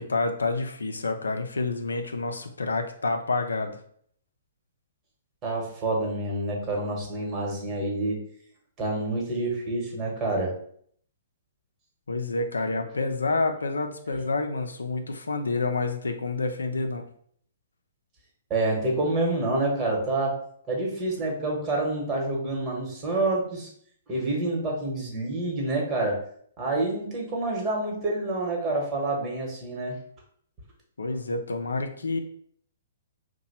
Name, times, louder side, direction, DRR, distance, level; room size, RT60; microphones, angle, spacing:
voice 1, 0.0-3.8 12.1-17.0 31.0-32.2, left 3 dB, 90° left, 5 dB, 0.4 m, -28 dB
voice 2, 5.4-8.2 8.8-10.5 18.5-20.4 20.7-23.7 24.1-26.2 26.6-30.0, right 2 dB, 25° right, -1 dB, 1.1 m, -27 dB
2.8 x 2.2 x 4.1 m, 0.62 s
hypercardioid pair, 130°, 0 cm